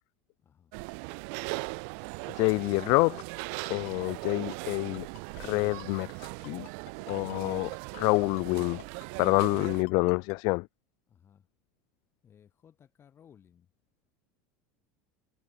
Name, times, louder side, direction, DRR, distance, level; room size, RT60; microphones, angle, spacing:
voice 1, 0.4-0.8 11.1-11.5 12.2-13.7, left 8 dB, 30° left, 6.5 m, -59 dB
sound 1, 0.7-9.8, right 40 dB or more, 70° right, 0.9 m, -39 dB
voice 2, 2.4-3.2 3.7-5.1 5.4-6.7 7.1-8.8 9.2-10.7, left 29 dB, 60° left, 0.3 m, -27 dB
Ringtone, 3.7-10.4, left 22 dB, 80° left, 1.1 m, -51 dB
supercardioid pair, 115°, 8 cm